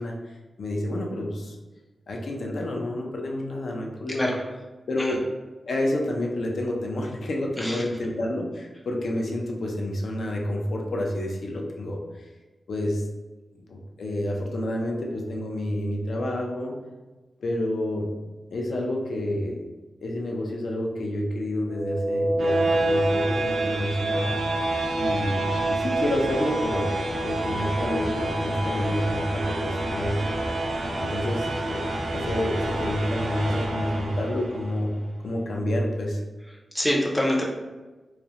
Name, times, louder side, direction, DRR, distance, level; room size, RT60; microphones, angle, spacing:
voice 1, 0.0-1.6 2.1-4.3 4.9-5.2 5.7-12.3 12.7-13.0 13.7-16.8 17.4-18.1 18.5-19.6 20.0-24.4 25.0-30.3 31.0-34.9 35.2-36.2, left 1 dB, 70° left, 0 dB, 0.4 m, -29 dB
voice 2, 4.1-4.4 5.0-5.2 7.6-7.8 36.7-37.4, left 1 dB, 5° left, -2 dB, 0.4 m, -25 dB
sound 1, 21.7-34.7, right 1 dB, 85° right, 0.4 m, -27 dB
2.4 x 2.0 x 2.7 m, 1.2 s
wide cardioid pair, 130°, 0 cm